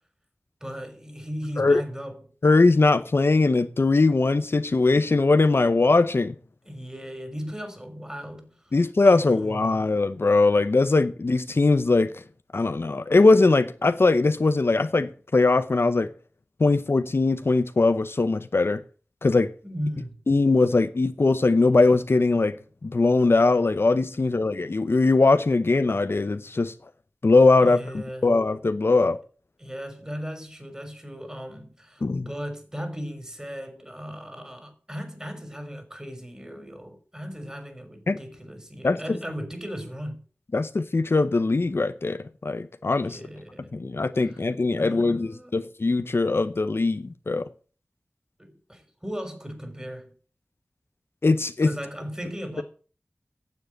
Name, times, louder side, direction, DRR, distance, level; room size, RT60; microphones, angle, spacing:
voice 1, 0.6-2.3 6.7-8.7 9.0-9.9 19.6-20.2 27.6-28.3 29.6-40.2 43.0-43.7 44.2-44.4 44.8-45.5 48.4-50.1 51.6-52.6, equal, 15° right, 3.7 m, -37 dB
voice 2, 2.4-6.3 8.7-12.2 12.5-16.1 16.6-18.8 19.2-19.5 20.3-22.6 22.8-26.7 27.2-29.2 32.0-32.3 38.1-38.2 38.8-39.2 40.5-43.2 43.7-47.5 51.2-51.7, left 3 dB, 65° left, 0.8 m, -21 dB
9.3 x 7.6 x 8.7 m
wide cardioid pair, 50°, 4 cm